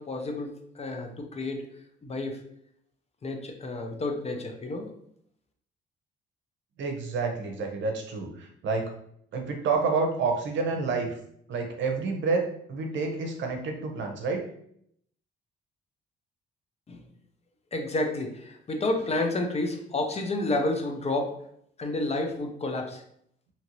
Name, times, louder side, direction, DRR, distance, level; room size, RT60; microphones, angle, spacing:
voice 1, 0.0-1.6 2.0-2.4 3.2-4.9 16.9-17.0 17.7-21.3 21.8-23.0, left 2 dB, 30° left, 4 dB, 0.6 m, -30 dB
voice 2, 6.8-8.9 9.3-11.2 11.5-14.5, right 4 dB, 70° right, 3 dB, 0.7 m, -29 dB
2.9 x 2.6 x 2.9 m, 0.68 s
cardioid pair, 90°, 20 cm